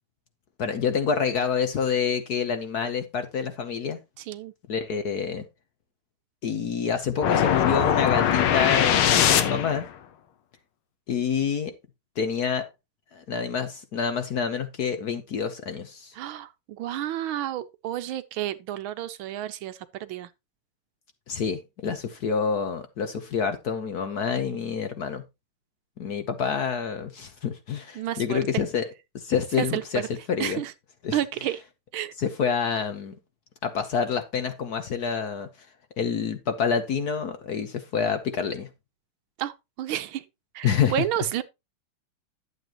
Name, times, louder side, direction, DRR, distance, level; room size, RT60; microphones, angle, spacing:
voice 1, 0.6-4.0 4.7-5.4 6.4-9.9 11.1-11.7 12.2-12.7 13.1-16.1 21.3-25.2 26.0-28.8 29.1-30.0 30.3-30.6 31.0-31.2 32.2-33.1 33.6-35.5 36.0-38.7 40.6-41.0, left 6 dB, 55° left, 1.2 m, -27 dB
voice 2, 4.2-4.5 16.1-20.3 28.0-28.4 29.6-30.1 30.4-30.7 31.1-31.6 31.9-32.1 39.4-40.2 40.5-41.4, right 12 dB, 75° right, 1.4 m, -31 dB
sound 1, 7.2-9.9, left 9 dB, 75° left, 1.8 m, -21 dB
11.0 x 8.0 x 2.9 m
omnidirectional pair, 2.4 m